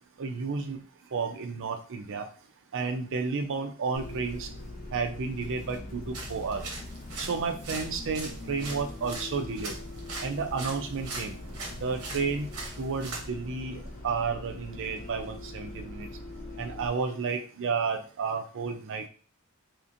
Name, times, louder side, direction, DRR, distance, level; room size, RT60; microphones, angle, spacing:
voice 1, 0.2-0.8 1.1-2.2 2.7-4.5 4.9-6.6 7.2-9.8 10.2-11.4 11.8-12.5 12.8-16.1 16.6-19.1, right 5 dB, 60° right, 5 dB, 0.5 m, -31 dB
Bus, 3.9-16.9, left 1 dB, 40° left, 0.5 m, -42 dB
sound 1, 6.1-13.3, right 3 dB, 85° right, 0.8 m, -41 dB
2.9 x 2.5 x 2.5 m, 0.40 s
head